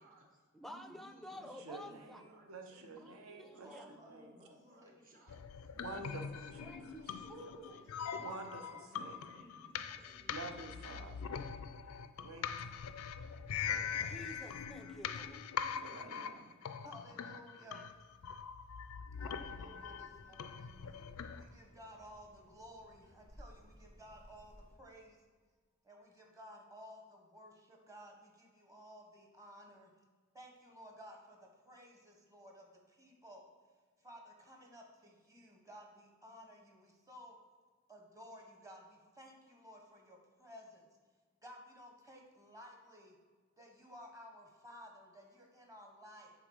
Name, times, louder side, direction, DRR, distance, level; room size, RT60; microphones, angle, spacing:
voice 1, 0.0-3.0 3.4-8.5 8.9-11.5, equal, 40° right, 0 dB, 1.1 m, -62 dB
voice 2, 0.5-2.2 3.0-3.9 6.6-7.5 14.0-15.4 17.7-17.8, left 1 dB, ahead, 6 dB, 0.4 m, -52 dB
voice 3, 1.3-4.3 5.7-6.8 8.2-9.2 10.3-11.3 12.2-13.0 13.7-14.1 15.7-16.5, right 3 dB, 75° right, 4 dB, 0.8 m, -49 dB
voice 4, 3.6-4.5 4.8-5.0 7.3-8.1 16.8-18.0 19.2-20.7 21.4-25.2 25.8-29.9 30.3-33.5 34.0-37.3 37.9-40.9 41.4-43.2 43.6-46.3, equal, 15° right, 1 dB, 1.0 m, -55 dB
sound 1, 5.3-21.4, left 7 dB, 75° left, 0.4 m, -42 dB
Child speech kid speaking, 19.1-24.7, equal, 60° right, 2.0 m, -61 dB
6.0 x 3.8 x 5.4 m, 1.5 s
head